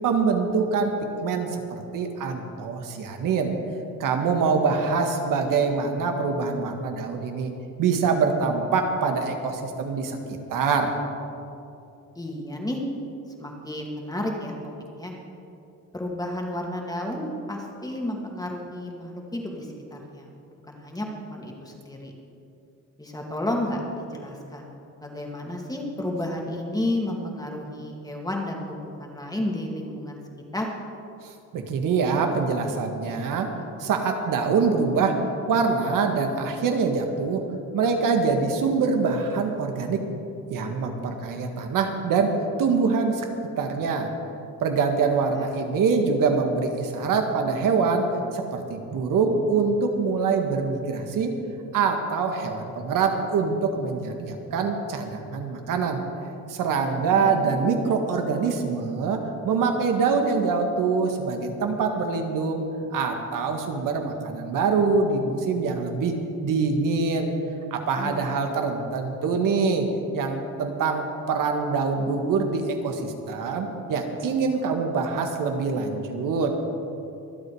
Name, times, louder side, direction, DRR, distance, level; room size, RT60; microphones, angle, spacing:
voice 1, 0.0-0.9 1.2-3.5 4.0-7.5 7.8-10.2 10.5-10.9 31.5-33.5 33.8-35.2 35.5-37.4 37.7-40.0 40.5-43.3 43.6-44.1 44.6-48.1 48.3-51.4 51.7-56.0 56.5-67.3 67.7-69.9 70.1-76.6, right 4 dB, 80° right, 4 dB, 1.8 m, -24 dB
voice 2, 12.2-12.8 13.4-14.5 15.0-15.1 15.9-20.3 20.7-22.1 23.0-24.7 25.0-30.2 30.5-30.7 45.3-45.5 57.2-57.8 68.0-68.3, left 1 dB, 10° left, 0 dB, 2.3 m, -32 dB
24.5 x 8.3 x 4.9 m, 2.7 s
cardioid pair, 115°, 32 cm